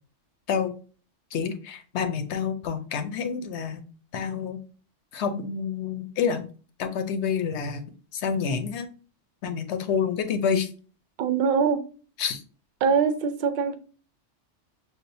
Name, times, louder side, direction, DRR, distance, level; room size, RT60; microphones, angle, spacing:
voice 1, 1.3-3.8 4.1-4.6 5.1-6.4 6.8-7.8 8.1-8.9 9.4-10.7 12.2-12.4, left 6 dB, 70° left, 0.9 m, -28 dB
voice 2, 11.2-11.8 12.8-13.8, right 6 dB, 60° right, 0.6 m, -23 dB
6.4 x 2.4 x 2.6 m
omnidirectional pair, 1.3 m